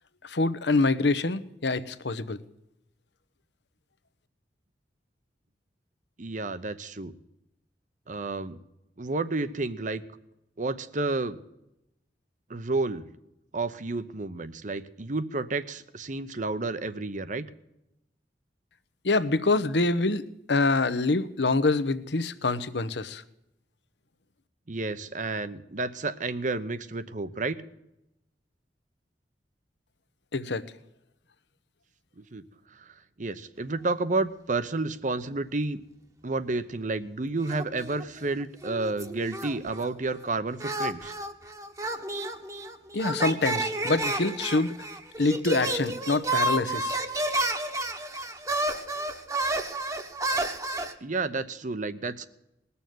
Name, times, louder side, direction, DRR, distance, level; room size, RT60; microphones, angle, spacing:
voice 1, 0.2-2.4 19.0-20.2 20.5-23.2 30.3-30.6 42.9-44.7 45.2-47.0, left 3 dB, 70° left, 14 dB, 0.9 m, -25 dB
voice 2, 6.2-7.1 8.1-8.6 9.0-10.0 10.6-11.4 12.5-13.1 13.5-17.5 24.7-27.6 32.2-32.4 33.2-35.8 36.2-41.1 51.0-52.3, right 3 dB, 45° right, 13 dB, 0.8 m, -31 dB
sound 1, 37.5-38.3 38.6-39.9 40.6-50.9, right 2 dB, 20° right, 1.2 m, -31 dB
20.0 x 7.0 x 9.2 m, 0.87 s
head